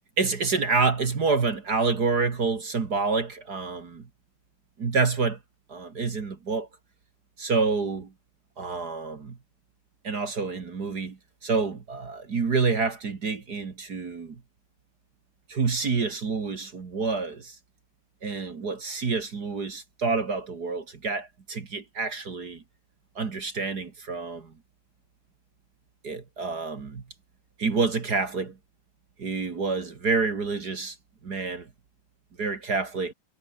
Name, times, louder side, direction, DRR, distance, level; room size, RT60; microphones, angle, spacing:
voice 1, 0.2-4.1 4.8-5.4 5.7-6.7 7.4-8.1 8.6-9.4 10.0-14.4 15.5-17.6 18.2-22.6 23.2-24.5 26.0-27.0 27.6-28.6 29.2-31.0 31.2-31.7 32.4-33.1, right 4 dB, 35° right, 1.9 m, -28 dB
omnidirectional pair, 3.9 m